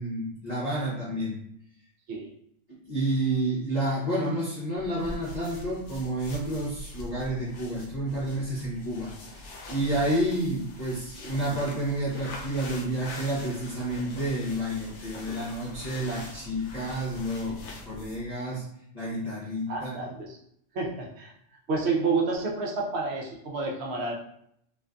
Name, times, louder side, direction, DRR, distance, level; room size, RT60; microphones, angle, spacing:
voice 1, 0.0-1.4 2.9-9.1 9.7-18.6 18.9-20.1, right 1 dB, 40° left, -9 dB, 0.7 m, -30 dB
sound 1, 4.8-18.3, left 2 dB, 70° left, 0.8 m, -43 dB
voice 2, 19.7-20.4 20.7-21.3 21.7-24.1, right 4 dB, 65° right, -2 dB, 0.7 m, -29 dB
2.5 x 2.5 x 2.2 m, 0.73 s
omnidirectional pair, 1.3 m